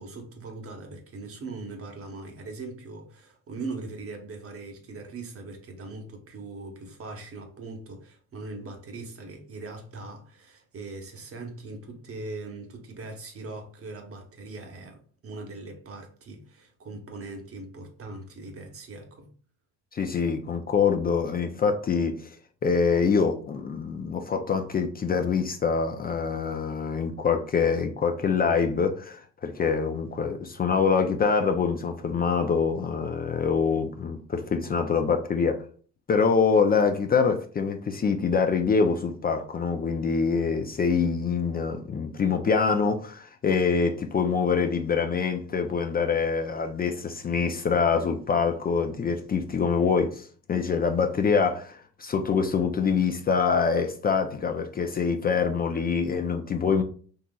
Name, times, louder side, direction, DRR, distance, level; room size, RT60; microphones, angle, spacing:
voice 1, 0.0-19.3, right 3 dB, 50° right, 0.9 m, -40 dB
voice 2, 19.9-22.3 22.6-35.6 36.1-56.8, left 5 dB, 30° left, 0.4 m, -25 dB
3.7 x 2.8 x 2.3 m
cardioid pair, 90°, 30 cm